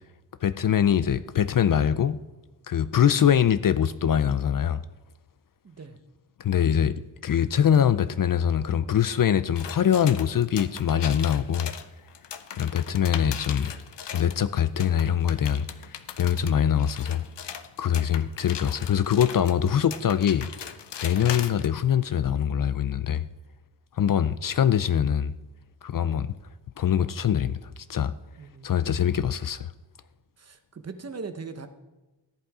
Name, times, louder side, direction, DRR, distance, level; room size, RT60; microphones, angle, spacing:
voice 1, 0.4-2.2 2.7-4.8 6.4-6.9 7.2-11.7 12.6-13.7 14.1-17.2 17.8-20.5 21.0-23.2 24.0-25.3 25.8-26.3 26.8-27.6 27.9-28.1 28.6-29.7, left 9 dB, 50° left, 0.5 m, -23 dB
voice 2, 5.6-6.0 28.4-29.1 30.4-31.7, right 4 dB, 35° right, 0.9 m, -40 dB
sound 1, 9.6-14.4 14.8-21.7, left 8 dB, 75° left, 0.8 m, -39 dB
14.5 x 10.5 x 4.8 m
wide cardioid pair, 180°, 43 cm